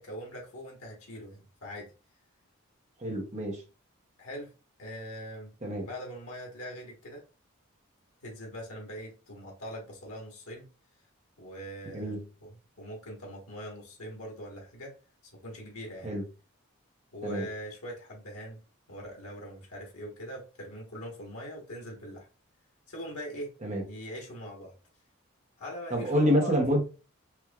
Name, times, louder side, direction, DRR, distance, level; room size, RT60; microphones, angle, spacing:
voice 1, 0.0-1.9 4.2-4.5 4.8-5.5 5.8-7.2 8.2-10.7 11.4-15.0 15.3-16.1 17.1-18.6 18.9-22.3 22.9-23.5 23.9-24.7 25.6-26.6, equal, 90° left, 1.3 m, -42 dB
voice 2, 3.0-3.6 5.6-5.9 11.9-12.2 16.0-16.2 17.2-17.5 23.6-23.8 25.9-26.8, equal, 30° right, 1.0 m, -27 dB
4.5 x 2.7 x 2.3 m
head